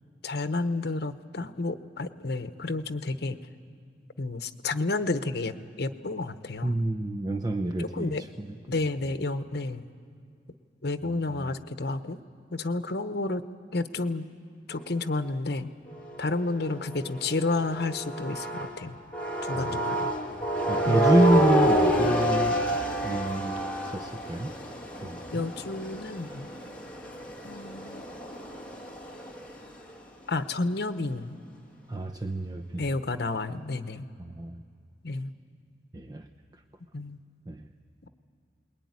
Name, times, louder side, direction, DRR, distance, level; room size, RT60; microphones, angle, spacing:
voice 1, 0.2-3.4 4.2-6.8 7.8-8.2 8.7-9.8 10.8-12.2 12.5-13.4 13.7-14.2 14.7-15.7 16.2-19.0 19.4-20.1 20.8-21.1 25.3-26.5 27.4-28.1 30.3-31.4 32.8-34.1 35.0-35.3 36.9-37.2, left 3 dB, 65° left, 10 dB, 1.0 m, -31 dB
voice 2, 6.6-8.8 11.0-11.5 19.5-19.8 20.7-22.6 23.0-24.5 25.0-25.5 31.9-32.8 34.2-34.6 35.9-36.3 37.5-37.7, right 1 dB, 25° right, 6 dB, 0.7 m, -28 dB
sound 1, 15.9-18.7 19.1-29.6, right 1 dB, 5° left, 2.4 m, -29 dB
25.5 x 21.5 x 9.7 m, 2.2 s
head